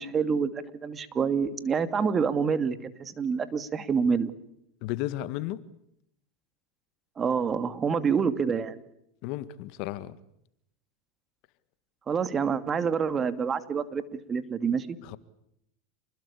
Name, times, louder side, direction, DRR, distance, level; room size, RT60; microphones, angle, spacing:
voice 1, 0.0-4.3 7.2-8.8 12.1-14.0 14.3-15.0, right 6 dB, 25° right, 2.4 m, -27 dB
voice 2, 4.8-5.6 9.2-10.2 15.0-15.2, left 14 dB, 60° left, 1.8 m, -33 dB
29.0 x 21.0 x 8.5 m
hypercardioid pair, 110°, 0 cm